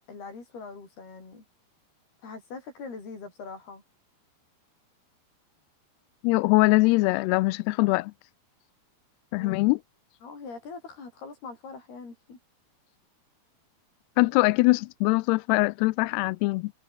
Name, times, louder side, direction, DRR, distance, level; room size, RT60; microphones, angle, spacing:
voice 1, 0.0-1.4 2.2-3.8 9.3-9.8 10.2-12.4, left 4 dB, 70° left, 9.6 m, -42 dB
voice 2, 6.2-8.1 9.3-9.8 14.2-16.7, left 23 dB, 90° left, 2.6 m, -22 dB
omnidirectional pair, 4.6 m